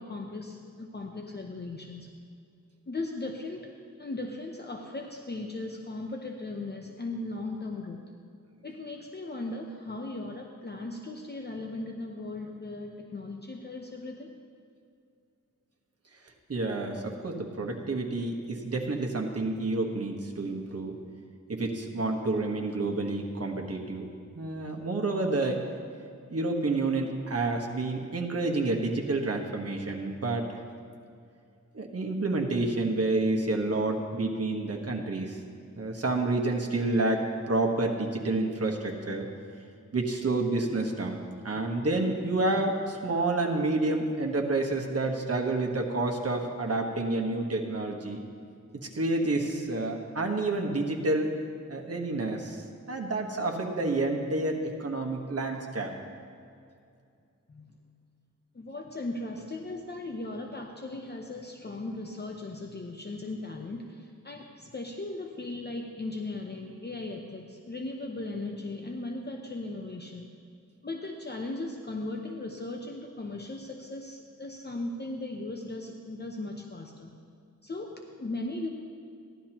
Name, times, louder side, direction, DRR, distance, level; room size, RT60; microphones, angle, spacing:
voice 1, 0.0-2.1 2.9-8.0 8.6-14.3 41.5-41.7 57.5-57.8 58.5-70.3 70.8-77.1 77.6-78.7, left 2 dB, 35° left, 2 dB, 0.8 m, -37 dB
voice 2, 16.5-21.0 21.5-24.1 24.3-25.6 26.3-30.5 31.7-35.4 35.8-39.3 39.9-41.2 41.4-48.2 48.9-51.3 51.7-55.9, right 2 dB, 50° right, 1 dB, 1.3 m, -29 dB
16.0 x 11.5 x 3.0 m, 2.4 s
wide cardioid pair, 100°, 30 cm